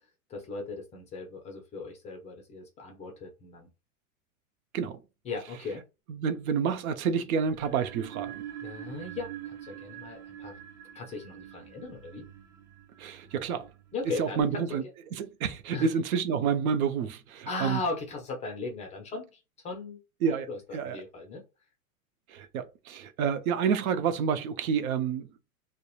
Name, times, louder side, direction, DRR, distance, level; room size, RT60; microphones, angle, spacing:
voice 1, 0.3-3.7 5.2-5.8 8.6-10.6 10.9-12.3 13.9-14.6 15.7-15.9 17.5-20.0 20.3-21.4, left 3 dB, 15° left, 0.4 m, -38 dB
voice 2, 6.1-8.4 13.0-13.7 14.2-14.8 15.1-17.8 20.2-21.0 22.3-25.3, right 6 dB, 75° right, 0.6 m, -29 dB
sound 1, 7.5-14.4, right 11 dB, 35° right, 0.9 m, -45 dB
2.8 x 2.1 x 2.3 m
hypercardioid pair, 120°, 42 cm